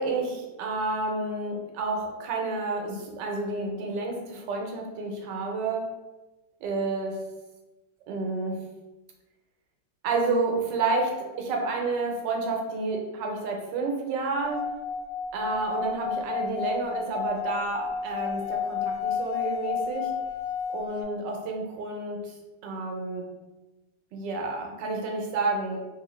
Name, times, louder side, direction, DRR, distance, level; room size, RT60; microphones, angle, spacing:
voice 1, 0.0-5.8 6.6-7.2 8.1-8.6 10.0-14.6 15.3-20.1 20.7-22.4 22.6-23.3 24.1-25.8, right 3 dB, 85° right, 1 dB, 1.3 m, -30 dB
Singing / Glass, 14.4-21.0, left 6 dB, 65° right, 0.8 m, -31 dB
3.3 x 2.6 x 3.0 m, 1.1 s
omnidirectional pair, 1.8 m